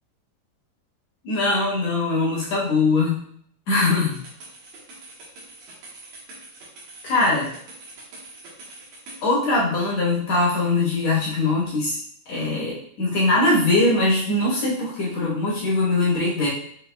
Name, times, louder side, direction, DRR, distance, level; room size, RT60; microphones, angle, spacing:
voice 1, 1.2-3.2 3.7-4.2 7.0-7.5 9.2-12.0 12.3-16.5, left 2 dB, 60° left, -6 dB, 2.1 m, -21 dB
sound 1, 4.1-9.2, right 2 dB, 65° right, 2.3 m, -44 dB
6.8 x 3.4 x 2.2 m, 0.64 s
omnidirectional pair, 3.9 m